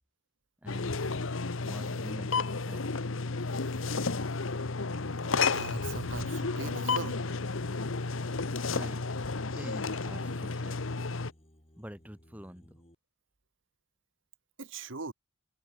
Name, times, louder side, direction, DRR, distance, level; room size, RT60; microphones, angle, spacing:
voice 1, 0.6-1.0 1.6-2.9 8.7-9.0 9.5-10.8 11.8-12.8, equal, 5° right, 2.0 m, -46 dB
sound 1, 0.7-11.3, left 4 dB, 80° left, 1.1 m, -32 dB
voice 2, 5.5-7.2 14.6-15.1, right 3 dB, 70° right, 1.5 m, -39 dB
sound 2, 5.6-12.9, equal, 30° left, 6.7 m, -60 dB
head